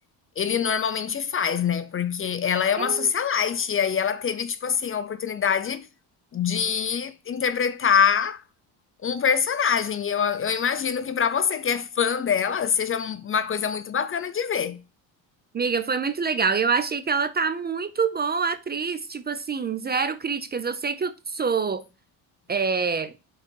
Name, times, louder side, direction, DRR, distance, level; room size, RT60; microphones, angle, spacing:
voice 1, 0.4-5.9 6.3-8.4 9.0-14.8, left 7 dB, 30° left, 0.5 m, -24 dB
voice 2, 2.8-3.1 15.5-21.8 22.5-23.1, right 5 dB, 25° right, 0.5 m, -26 dB
5.7 x 4.0 x 4.5 m
cardioid pair, 100°, 42 cm